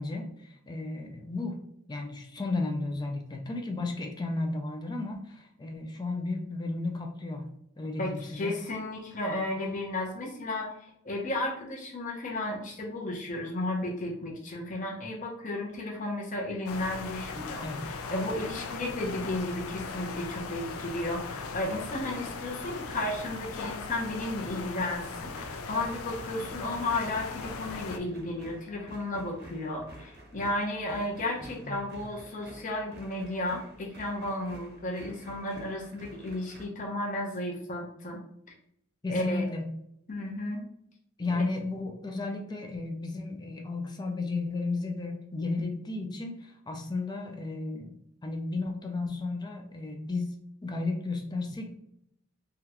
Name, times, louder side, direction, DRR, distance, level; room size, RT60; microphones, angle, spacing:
voice 1, 0.0-1.6 1.9-7.5 7.8-8.5 17.6-17.9 31.6-31.8 39.0-39.7 41.2-47.9 48.2-51.8, left 3 dB, 20° left, 3 dB, 0.4 m, -33 dB
voice 2, 8.0-10.7 11.0-38.2 39.1-39.4 40.1-40.6 41.3-41.4, left 1 dB, 40° left, -1 dB, 0.8 m, -33 dB
sound 1, 16.7-28.0, left 4 dB, 90° left, 0.4 m, -39 dB
sound 2, 25.3-36.7, right 1 dB, 50° right, 0.8 m, -50 dB
3.6 x 2.3 x 2.9 m, 0.74 s
head